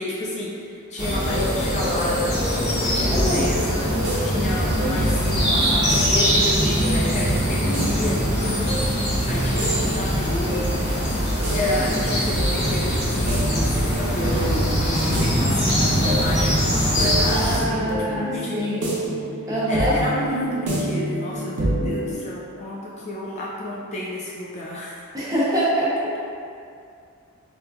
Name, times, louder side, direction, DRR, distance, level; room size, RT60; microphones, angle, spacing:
voice 1, 0.0-2.4 2.7-8.7 9.3-10.7 11.5-18.9 19.7-25.1, left 1 dB, 30° left, -5 dB, 0.3 m, -30 dB
sound 1, 1.0-17.6, equal, 50° left, 0.9 m, -22 dB
voice 2, 3.0-3.4 4.8-5.0 17.2-18.9 19.5-20.0 25.1-26.2, equal, 15° right, -8 dB, 0.6 m, -25 dB
sound 2, 3.1-22.1, right 1 dB, 90° right, 0.7 m, -30 dB
4.4 x 2.5 x 2.3 m, 2.4 s
head